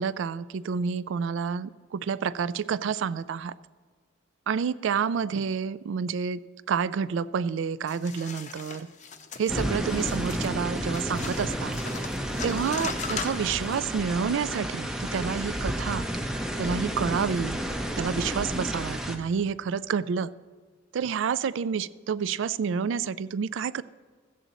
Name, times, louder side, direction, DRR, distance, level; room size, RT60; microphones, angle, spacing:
voice 1, 0.0-3.5 4.5-8.9 9.4-11.8 12.4-16.1 16.6-17.6 18.0-20.3 20.9-23.8, right 6 dB, 70° right, 18 dB, 0.3 m, -29 dB
sound 1, 7.9-13.8, left 5 dB, 35° left, 0.6 m, -39 dB
sound 2, 9.5-19.2, equal, 5° right, 0.5 m, -31 dB
15.5 x 7.6 x 4.0 m, 1.5 s
head